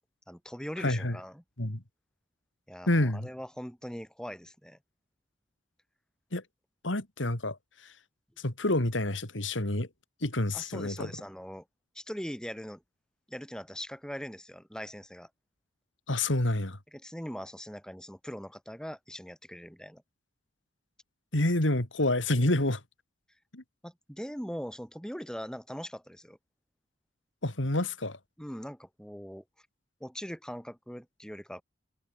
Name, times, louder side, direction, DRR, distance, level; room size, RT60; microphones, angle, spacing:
voice 1, 0.3-1.4 2.7-4.8 10.5-11.6 11.9-12.8 13.3-15.3 16.9-20.0 23.8-26.4 28.4-29.4 30.0-31.6, equal, 5° left, 5.7 m, -41 dB
voice 2, 0.8-1.2 1.6-1.8 2.9-3.3 6.3-6.4 6.8-7.6 8.4-9.9 10.2-11.1 16.1-16.8 21.3-22.8 23.5-23.6 27.4-28.2, left 1 dB, 90° left, 3.3 m, -28 dB
head